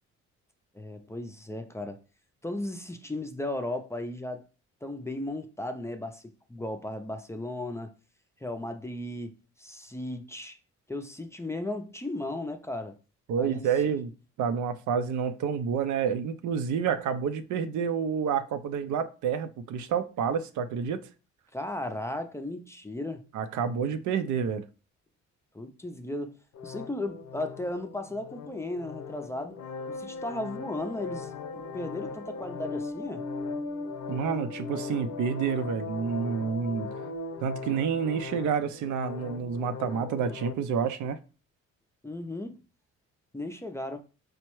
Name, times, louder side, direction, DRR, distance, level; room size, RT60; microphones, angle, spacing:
voice 1, 0.7-2.0 2.4-4.4 4.8-7.9 8.4-10.6 10.9-13.0 13.4-14.0 21.5-23.2 25.5-29.6 29.9-33.3 42.0-42.6 43.3-44.0, left 1 dB, 10° left, 0.4 m, -36 dB
voice 2, 13.3-14.1 14.4-21.0 23.3-24.6 34.1-36.9 37.4-41.2, right 7 dB, 75° right, 0.5 m, -29 dB
sound 1, 26.5-40.5, left 4 dB, 65° left, 0.6 m, -38 dB
4.5 x 2.1 x 3.0 m
cardioid pair, 90°, 30 cm